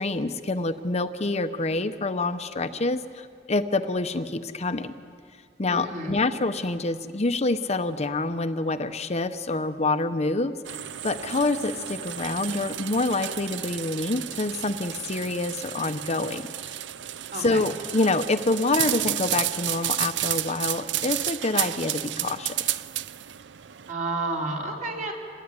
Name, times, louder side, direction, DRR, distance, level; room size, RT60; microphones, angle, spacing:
voice 1, 0.0-4.9 5.6-16.4 17.4-22.6, left 2 dB, 40° left, 9 dB, 0.9 m, -27 dB
voice 2, 5.7-6.2 17.3-17.6 23.9-25.1, right 2 dB, 45° right, -1 dB, 4.5 m, -30 dB
sound 1, 10.6-23.9, right 13 dB, 85° right, 0.6 m, -32 dB
26.0 x 20.0 x 9.7 m, 2.3 s
head